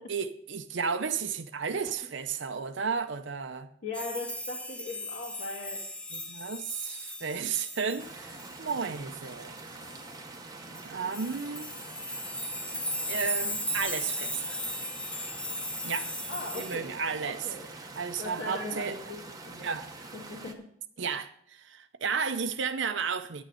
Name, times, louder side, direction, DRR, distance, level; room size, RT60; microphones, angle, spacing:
voice 1, 0.1-3.7 6.1-9.5 10.8-11.7 13.1-14.6 15.8-16.1 16.5-17.4 18.0-19.0 19.6-19.9 21.0-23.4, right 5 dB, 65° right, 0.7 m, -33 dB
voice 2, 3.8-5.9 10.5-10.7 16.3-17.0 17.2-17.7 18.2-19.2 19.5-19.7 20.1-20.7, left 2 dB, 50° left, 2.1 m, -39 dB
sound 1, 3.9-10.1 10.8-10.9 11.1-16.8, equal, 5° left, 0.6 m, -37 dB
sound 2, 8.0-20.5, right 3 dB, 20° right, 0.9 m, -45 dB
9.3 x 9.1 x 5.5 m
head